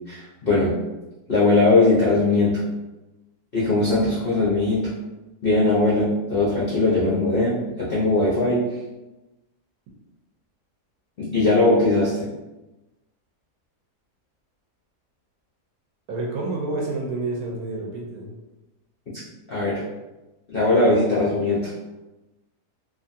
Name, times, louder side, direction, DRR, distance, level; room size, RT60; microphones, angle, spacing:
voice 1, 0.1-0.7 1.3-2.6 3.5-4.9 5.4-8.6 11.2-12.2 19.5-19.8 20.5-21.7, left 2 dB, 65° left, -8 dB, 0.5 m, -20 dB
voice 2, 16.1-18.3, right 2 dB, 70° right, -2 dB, 1.0 m, -29 dB
2.7 x 2.5 x 2.6 m, 1.1 s
omnidirectional pair, 1.8 m